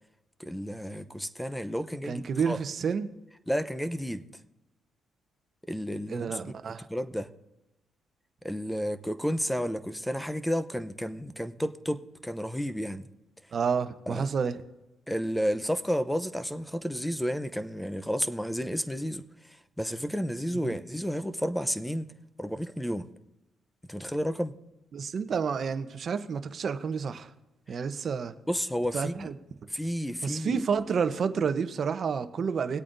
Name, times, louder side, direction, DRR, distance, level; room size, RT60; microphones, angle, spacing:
voice 1, 0.4-2.6 3.5-4.3 5.7-7.3 8.4-13.1 14.1-14.3 15.1-22.1 22.4-23.1 23.9-24.5 27.7-27.8 28.5-29.3 29.7-30.6, equal, 5° left, 0.7 m, -32 dB
voice 2, 2.1-3.1 6.1-6.9 13.5-14.6 20.5-20.8 24.9-27.3 27.7-28.3 28.9-29.3 30.2-32.8, right 6 dB, 50° right, 0.8 m, -30 dB
20.0 x 8.4 x 2.6 m
cardioid pair, 90°, 0 cm